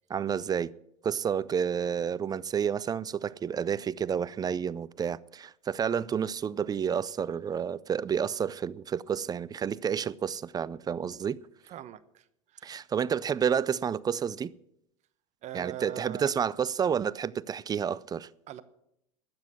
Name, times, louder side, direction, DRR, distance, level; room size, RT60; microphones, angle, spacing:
voice 1, 0.1-0.7 1.0-11.4 12.6-14.5 15.5-18.3, right 7 dB, 20° right, 0.4 m, -30 dB
voice 2, 11.7-12.9 15.4-16.3 18.5-18.6, right 12 dB, 40° right, 1.0 m, -42 dB
12.0 x 8.3 x 8.2 m
hypercardioid pair, 85°, 17 cm